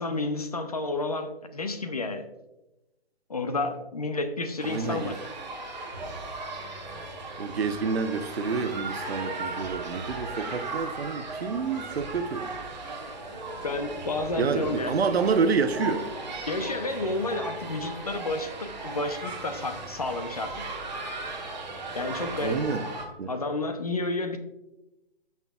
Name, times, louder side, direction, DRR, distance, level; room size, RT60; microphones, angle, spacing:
voice 1, 0.0-2.2 3.3-5.2 13.6-15.0 16.5-20.5 21.9-22.7 23.3-24.4, left 2 dB, 40° left, 8 dB, 0.6 m, -30 dB
sound 1, 4.6-23.0, right 2 dB, 45° right, 1.4 m, -37 dB
voice 2, 4.6-5.2 7.4-12.5 14.4-16.1 22.4-22.8 23.2-23.3, right 5 dB, 80° right, 10 dB, 0.9 m, -28 dB
13.0 x 5.9 x 2.3 m, 0.97 s
hypercardioid pair, 180°, 31 cm